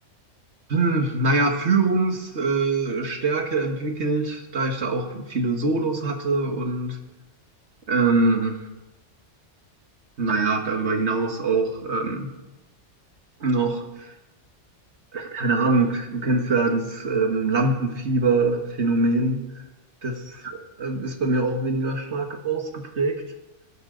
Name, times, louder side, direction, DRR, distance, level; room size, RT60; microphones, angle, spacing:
voice 1, 0.7-7.0 7.9-8.6 10.2-12.3 13.4-14.1 15.1-19.4 20.0-20.2 20.4-23.1, right 3 dB, 65° right, 4 dB, 1.9 m, -23 dB
20.0 x 12.0 x 3.9 m, 0.99 s
omnidirectional pair, 1.3 m